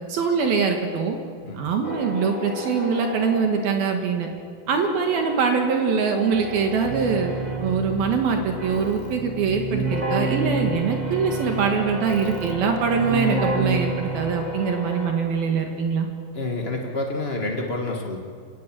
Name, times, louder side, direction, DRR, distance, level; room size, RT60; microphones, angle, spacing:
voice 1, 0.1-1.2 1.5-4.3 4.7-7.3 7.6-16.1, right 5 dB, 65° right, 3 dB, 3.3 m, -23 dB
sound 1, 1.8-4.3 4.7-15.9, left 1 dB, 15° right, 1.5 m, -36 dB
Keyboard (musical), 6.3-14.6, right 3 dB, 40° right, 1.0 m, -29 dB
voice 2, 16.3-18.2, left 2 dB, 75° left, 1 dB, 0.5 m, -28 dB
28.5 x 18.0 x 7.6 m, 2.1 s
omnidirectional pair, 4.8 m